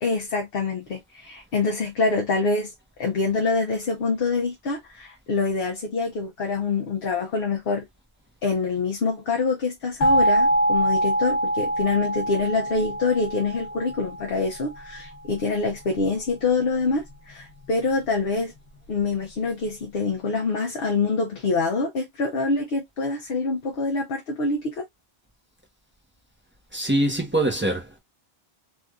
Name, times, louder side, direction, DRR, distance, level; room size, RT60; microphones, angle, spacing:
voice 1, 0.0-2.7 3.0-7.8 8.4-18.5 18.9-24.8, left 4 dB, 65° left, 0.9 m, -25 dB
sound 1, 10.0-14.7, right 1 dB, 85° left, 1.2 m, -24 dB
voice 2, 26.7-28.0, right 1 dB, 10° right, 0.8 m, -23 dB
3.4 x 2.5 x 2.3 m
omnidirectional pair, 1.1 m